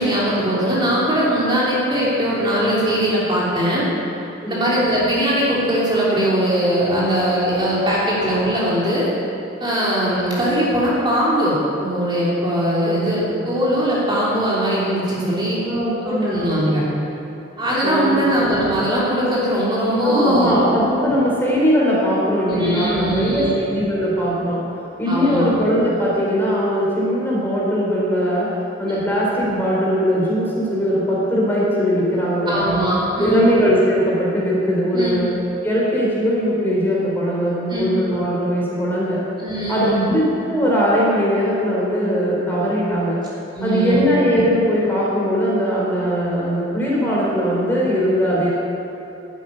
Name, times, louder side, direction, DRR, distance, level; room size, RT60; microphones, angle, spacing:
voice 1, 0.0-3.8 4.5-9.1 9.6-15.6 16.0-16.8 17.6-20.5 22.5-23.5 25.1-25.5 28.9-29.0 32.5-33.5 34.9-35.2 37.7-37.9 39.4-40.1 43.5-44.1, right 1 dB, 25° right, -7 dB, 3.1 m, -20 dB
voice 2, 15.6-16.7 17.8-18.4 20.0-24.6 25.0-28.5 28.8-32.8 33.2-35.3 35.6-39.2 39.7-40.2 40.5-43.2 43.6-48.5, equal, 10° left, -6 dB, 3.9 m, -20 dB
12.5 x 8.8 x 9.3 m, 2.8 s
head